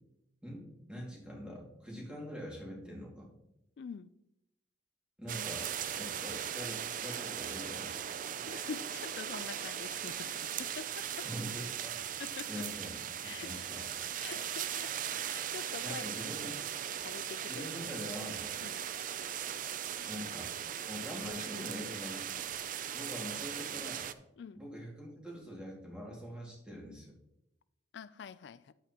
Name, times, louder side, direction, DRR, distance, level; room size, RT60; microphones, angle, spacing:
voice 1, 0.4-3.3 5.2-8.5 11.2-12.0 12.5-14.0 15.8-16.5 17.5-18.5 20.0-20.5 20.9-22.2 22.9-24.1 24.6-27.1, equal, 5° right, -3 dB, 2.2 m, -44 dB
voice 2, 3.8-4.1 8.5-11.3 12.2-12.7 13.2-13.5 14.2-14.9 15.2-16.1 17.0-17.7 18.6-18.9 24.4-24.6 27.9-28.7, left 6 dB, 60° left, 15 dB, 0.3 m, -45 dB
sound 1, 5.3-24.1, right 9 dB, 45° right, 0.4 m, -39 dB
10.0 x 8.0 x 2.9 m, 0.83 s
head